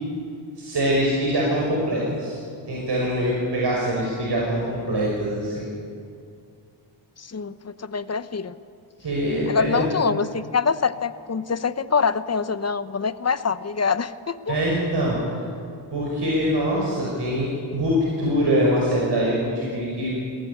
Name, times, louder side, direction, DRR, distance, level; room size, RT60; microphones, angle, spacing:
voice 1, 0.6-2.4 2.7-5.7 9.0-9.9 14.5-15.2 15.9-20.1, equal, 55° right, -3 dB, 5.9 m, -23 dB
voice 2, 7.2-8.5 9.5-14.6, left 5 dB, 30° left, 13 dB, 0.9 m, -25 dB
22.0 x 17.5 x 8.7 m, 2.3 s
cardioid pair, 90°, 48 cm